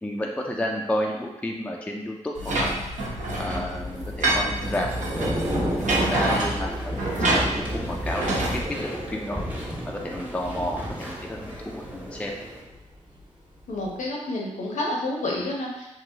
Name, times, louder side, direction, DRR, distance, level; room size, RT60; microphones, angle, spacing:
voice 1, 0.0-2.7 3.4-4.9 5.2-6.9 7.2-9.4 9.9-12.3, left 1 dB, 10° left, 0 dB, 0.3 m, -31 dB
sound 1, 2.4-8.6, right 1 dB, 75° right, 0.8 m, -26 dB
Thunder / Rain, 3.3-13.2 13.5-13.8, equal, 35° right, 1.0 m, -34 dB
Walk footsteps / Chatter / Squeak, 4.9-12.6, right 1 dB, 10° right, 0.8 m, -41 dB
voice 2, 13.7-15.9, left 1 dB, 80° left, -3 dB, 0.8 m, -29 dB
3.0 x 2.7 x 2.7 m, 0.97 s
cardioid pair, 75°, 13 cm